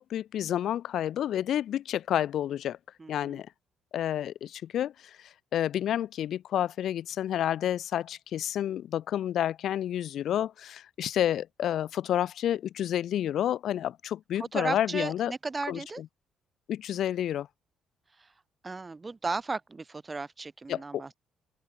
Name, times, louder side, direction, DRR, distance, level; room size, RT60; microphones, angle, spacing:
voice 1, 0.0-2.8 3.1-3.5 3.9-4.9 5.5-15.3 15.7-16.1 16.7-17.5 20.7-21.1, left 11 dB, 60° left, 1.1 m, -30 dB
voice 2, 3.0-3.4 14.4-16.0 18.2-18.3 18.6-21.1, right 3 dB, 20° right, 7.3 m, -35 dB
open air
cardioid pair, 140°, 0 cm